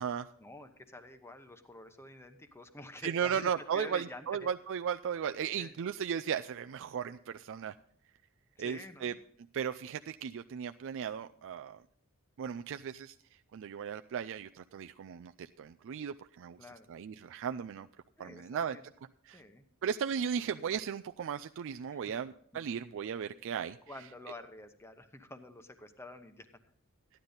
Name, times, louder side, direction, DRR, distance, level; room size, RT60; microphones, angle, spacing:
voice 1, 0.4-4.5 5.6-5.7 8.6-9.2 16.6-16.9 18.2-18.8 19.3-19.7 21.9-22.1 23.9-26.5, left 1 dB, 10° left, 7 dB, 1.0 m, -48 dB
voice 2, 3.0-7.7 8.6-9.1 9.5-11.8 12.4-13.2 13.5-16.6 16.9-17.9 18.2-18.8 19.2-19.4 19.8-23.8, right 7 dB, 60° right, 8 dB, 0.4 m, -36 dB
14.5 x 10.5 x 4.0 m, 0.63 s
head